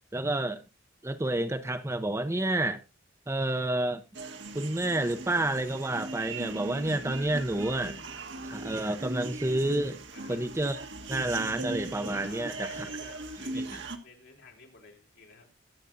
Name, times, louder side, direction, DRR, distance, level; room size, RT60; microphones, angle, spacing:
voice 1, 0.1-0.6 1.0-2.8 3.3-4.0 4.5-8.0 8.4-10.0 10.3-10.8 11.1-12.9 13.5-13.8, right 1 dB, 15° right, 0.7 m, -29 dB
sound 1, 4.1-14.0, right 3 dB, 65° right, 1.5 m, -39 dB
voice 2, 10.1-10.5 12.2-15.5, left 4 dB, 65° left, 4.3 m, -53 dB
22.0 x 8.1 x 2.6 m
head